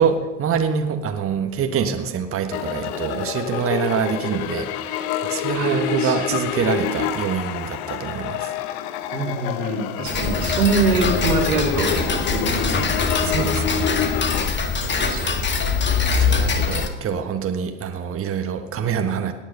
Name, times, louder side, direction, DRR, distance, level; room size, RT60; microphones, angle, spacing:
voice 1, 0.0-8.5 13.2-13.9 15.2-15.4 16.0-19.3, right 7 dB, 30° right, 6 dB, 1.4 m, -25 dB
sound 1, 2.5-14.5, left 10 dB, 55° left, 1.0 m, -28 dB
voice 2, 5.5-6.1 9.1-13.0 15.1-15.7, right 3 dB, 90° right, 0 dB, 3.0 m, -24 dB
Tick-tock, 10.1-16.9, left 5 dB, 25° left, 1.9 m, -23 dB
18.0 x 9.8 x 5.4 m, 1.1 s
hypercardioid pair, 85°, 43 cm